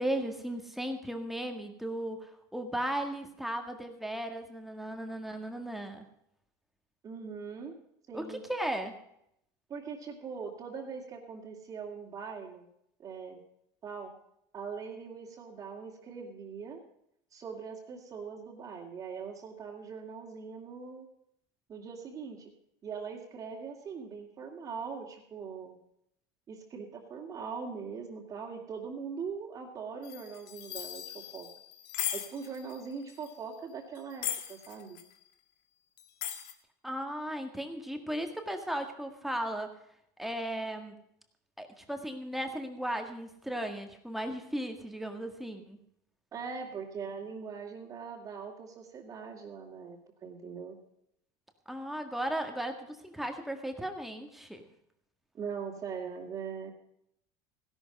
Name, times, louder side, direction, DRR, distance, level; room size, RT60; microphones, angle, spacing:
voice 1, 0.0-6.1 8.1-9.0 36.8-39.7 40.2-40.9 41.6-45.8 51.7-54.6, right 1 dB, ahead, 4 dB, 1.8 m, -36 dB
voice 2, 7.0-7.7 8.1-8.4 9.7-12.7 13.0-13.4 13.8-14.1 14.5-16.8 17.3-21.1 21.7-22.5 22.8-25.8 26.5-31.5 32.1-35.0 46.3-50.8 55.3-56.7, right 5 dB, 30° right, -5 dB, 2.6 m, -41 dB
sound 1, 30.0-33.4 34.0-35.1 36.0-36.5, left 11 dB, 75° left, 1.9 m, -38 dB
16.0 x 12.0 x 5.3 m, 0.75 s
cardioid pair, 140°, 11 cm